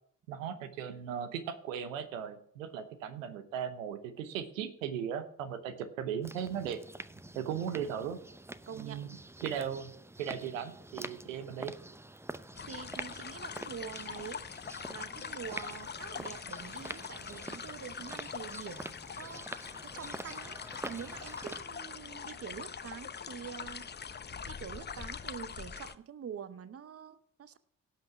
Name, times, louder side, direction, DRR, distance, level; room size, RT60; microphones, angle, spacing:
voice 1, 0.3-6.8 7.3-8.2 8.7-9.1 9.4-9.9 10.2-11.7, right 8 dB, 85° right, 11 dB, 0.9 m, -37 dB
sound 1, 6.2-21.6, right 1 dB, 5° right, 0.7 m, -46 dB
voice 2, 8.7-9.0 12.6-23.9 24.5-27.6, right 8 dB, 35° right, 15 dB, 0.9 m, -46 dB
sound 2, 12.5-25.9, left 6 dB, 25° left, 0.8 m, -43 dB
17.0 x 5.9 x 5.9 m, 0.64 s
hypercardioid pair, 45°, 39 cm